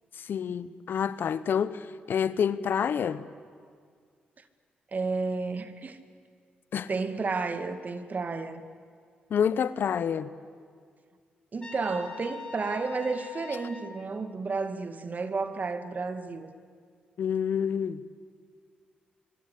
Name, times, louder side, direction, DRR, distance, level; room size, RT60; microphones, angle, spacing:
voice 1, 0.2-3.2 6.7-6.9 9.3-10.3 17.2-18.0, left 8 dB, 65° left, 0.9 m, -28 dB
voice 2, 4.9-6.0 6.9-8.6 11.5-16.5, right 4 dB, 45° right, 2.1 m, -32 dB
Trumpet, 11.6-13.9, left 4 dB, 25° left, 6.7 m, -42 dB
25.0 x 23.5 x 8.5 m
supercardioid pair, 50°, 4 cm